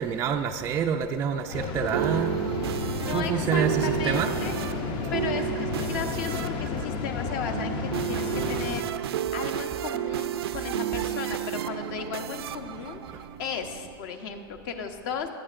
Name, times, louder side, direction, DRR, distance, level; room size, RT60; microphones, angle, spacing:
voice 1, 0.0-2.4 3.1-4.3 13.1-13.2, right 7 dB, 20° right, 2 dB, 0.4 m, -27 dB
sound 1, 1.5-8.8, left 6 dB, 35° left, 0.7 m, -32 dB
sound 2, 1.5-13.9, right 12 dB, 85° right, 0.5 m, -32 dB
voice 2, 2.7-8.8 9.3-15.3, left 6 dB, 55° left, 6 dB, 1.1 m, -36 dB
17.5 x 11.5 x 2.6 m, 2.4 s
supercardioid pair, 140°, 13 cm